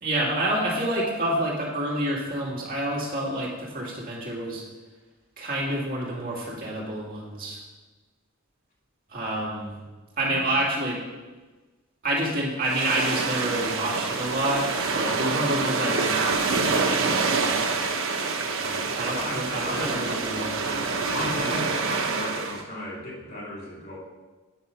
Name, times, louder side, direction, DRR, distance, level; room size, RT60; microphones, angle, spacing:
voice 1, 0.0-4.6 5.4-7.6 9.1-9.8 10.2-11.0 12.0-17.6 19.0-20.6, right 1 dB, 45° right, -3 dB, 2.2 m, -28 dB
sound 1, 12.6-22.6, right 4 dB, 70° right, 1.0 m, -26 dB
voice 2, 18.6-20.1 21.1-24.0, left 1 dB, 50° left, -4 dB, 3.1 m, -35 dB
9.2 x 6.0 x 5.6 m, 1.3 s
head